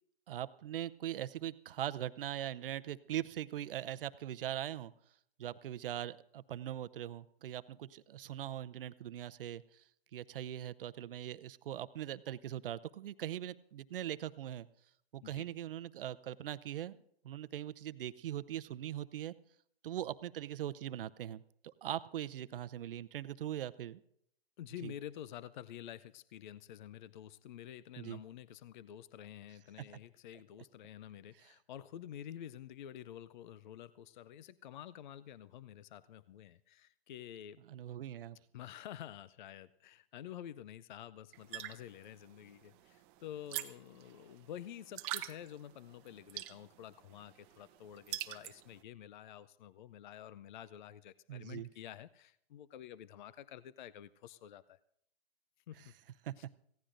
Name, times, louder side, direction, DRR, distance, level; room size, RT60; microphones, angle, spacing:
voice 1, 0.3-4.9 5.4-9.8 10.1-14.7 15.1-16.9 17.2-19.3 19.8-24.0 24.8-24.9 28.0-28.2 37.7-38.4 51.3-51.7 56.2-56.3, right 11 dB, 60° right, 15 dB, 0.7 m, -41 dB
voice 2, 24.6-37.6 38.5-54.8 55.7-55.9 56.4-56.5, left 10 dB, 50° left, 17 dB, 0.5 m, -49 dB
sound 1, 41.3-48.8, right 15 dB, 25° right, 0.8 m, -46 dB
25.0 x 16.5 x 2.6 m, 0.71 s
hypercardioid pair, 145°, 31 cm